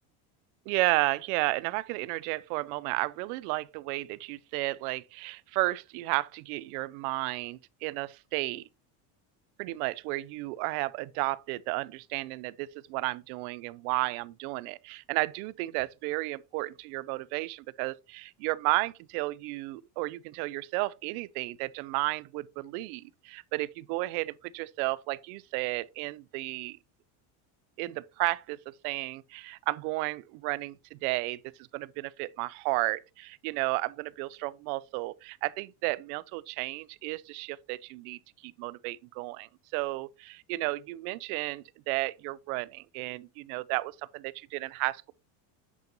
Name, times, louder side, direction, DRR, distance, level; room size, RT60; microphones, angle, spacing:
voice 1, 0.7-8.6 9.6-26.8 27.8-28.6 28.8-31.4 31.7-45.1, right 21 dB, 80° right, 0.6 m, -33 dB
8.3 x 5.3 x 2.9 m
cardioid pair, 160°, 43 cm